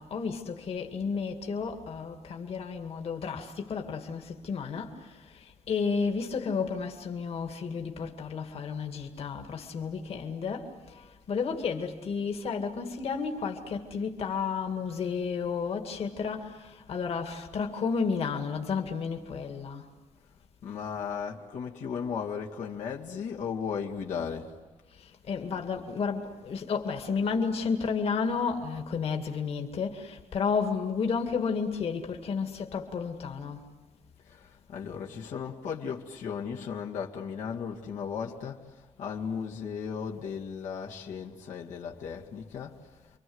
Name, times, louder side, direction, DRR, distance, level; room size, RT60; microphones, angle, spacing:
voice 1, 0.0-19.9 24.9-33.6, left 5 dB, 55° left, 2.2 m, -32 dB
voice 2, 20.6-24.5 34.3-42.8, left 6 dB, 90° left, 2.3 m, -36 dB
30.0 x 24.5 x 8.0 m
wide cardioid pair, 165°, 12 cm